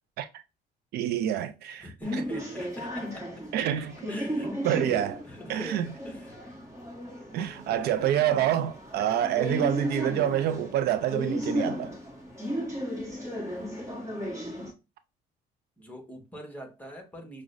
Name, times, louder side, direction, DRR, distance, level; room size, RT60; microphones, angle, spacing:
voice 1, 0.9-2.2 3.5-3.9 4.6-5.2 5.5-5.9 7.3-11.9, right 11 dB, 70° right, 0.4 m, -27 dB
voice 2, 1.8-3.3 3.6-4.5 5.2-5.8 6.0-6.4 7.7-8.0 15.8-17.4, equal, 10° left, 1.1 m, -43 dB
sound 1, 2.0-14.7, equal, 15° right, 1.2 m, -35 dB
5.9 x 2.1 x 2.5 m
cardioid pair, 110°, 17 cm